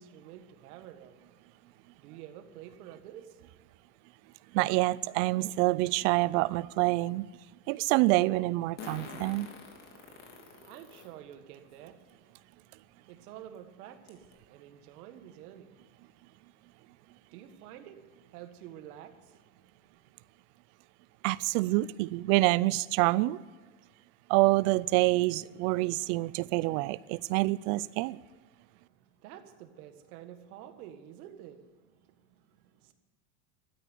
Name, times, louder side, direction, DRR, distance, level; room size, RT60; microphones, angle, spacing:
voice 1, 0.0-4.6 10.1-20.3 28.6-32.9, right 10 dB, 80° right, 1.7 m, -51 dB
voice 2, 4.5-7.3 7.7-9.5 21.2-23.4 24.3-28.2, right 20 dB, 60° right, 0.5 m, -27 dB
Fart, 6.0-6.1 8.8-11.1 11.7-11.8 13.1-13.2 13.6-13.7 14.1-14.3, left 4 dB, 35° left, 2.9 m, -46 dB
13.5 x 9.2 x 9.5 m
supercardioid pair, 145°, 44 cm